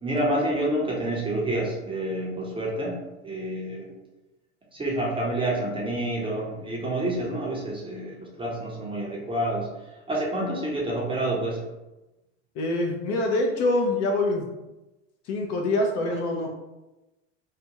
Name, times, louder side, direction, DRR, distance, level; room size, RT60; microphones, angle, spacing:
voice 1, 0.0-3.0 3.2-3.9 4.7-9.7 10.1-11.6, right 1 dB, 15° right, -3 dB, 0.6 m, -28 dB
voice 2, 12.6-14.5 15.3-16.5, left 2 dB, 45° left, 1 dB, 0.5 m, -25 dB
2.4 x 2.2 x 2.8 m, 1.0 s
hypercardioid pair, 90°, 37 cm